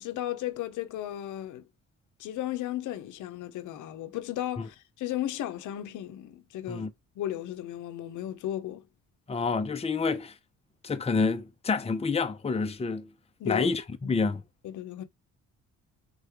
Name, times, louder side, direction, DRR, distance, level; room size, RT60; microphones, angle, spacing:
voice 1, 0.0-1.7 2.2-6.9 7.2-8.8 13.4-13.7 14.0-14.3 14.6-15.0, left 13 dB, 80° left, 0.7 m, -35 dB
voice 2, 9.3-10.3 10.8-13.1 13.4-14.4, left 4 dB, 20° left, 0.7 m, -28 dB
3.9 x 3.2 x 3.5 m
cardioid pair, 90°, 30 cm